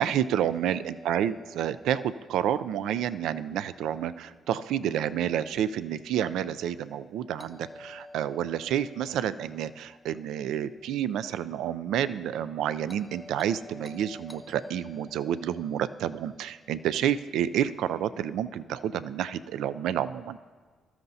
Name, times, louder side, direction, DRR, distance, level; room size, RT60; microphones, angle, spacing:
voice 1, 0.0-20.4, right 10 dB, 85° right, 14 dB, 0.3 m, -29 dB
Doorbell, 0.5-4.5 7.4-11.6 12.9-17.3, left 1 dB, 10° left, 0.8 m, -52 dB
21.0 x 13.0 x 2.7 m, 1.5 s
cardioid pair, 90°, 0 cm